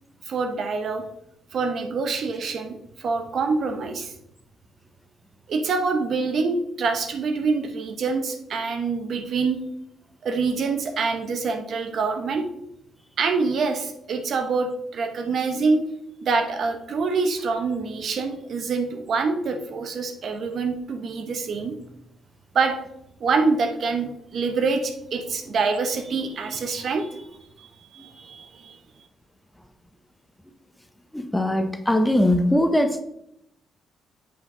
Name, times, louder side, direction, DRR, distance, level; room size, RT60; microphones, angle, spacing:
voice 1, 0.3-1.0 1.5-4.1 5.5-9.6 10.2-12.4 13.2-15.8 16.2-21.8 22.5-22.7 23.2-27.3 27.6-28.8, right 4 dB, 60° right, 6 dB, 1.1 m, -25 dB
voice 2, 31.1-33.0, left 1 dB, 5° left, 8 dB, 0.7 m, -21 dB
7.8 x 4.9 x 3.9 m, 0.78 s
cardioid pair, 90°, 0 cm